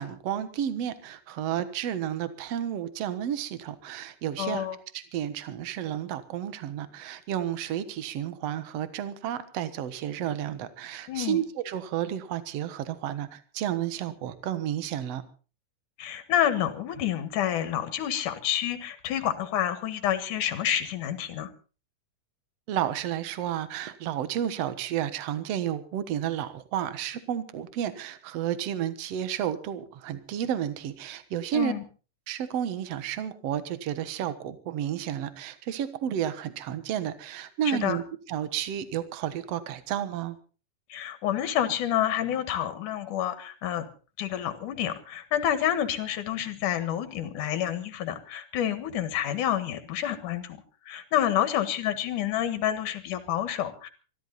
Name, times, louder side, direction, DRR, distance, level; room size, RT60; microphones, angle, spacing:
voice 1, 0.0-4.7 4.9-15.2 22.7-31.7 32.3-40.4, right 10 dB, 60° right, 12 dB, 2.1 m, -31 dB
voice 2, 4.4-4.8 11.1-11.4 16.0-21.5 31.5-31.8 37.7-38.0 40.9-43.9 44.2-50.6 50.8-53.9, left 11 dB, 75° left, 10 dB, 3.1 m, -28 dB
24.0 x 14.0 x 4.1 m, 0.36 s
omnidirectional pair, 3.7 m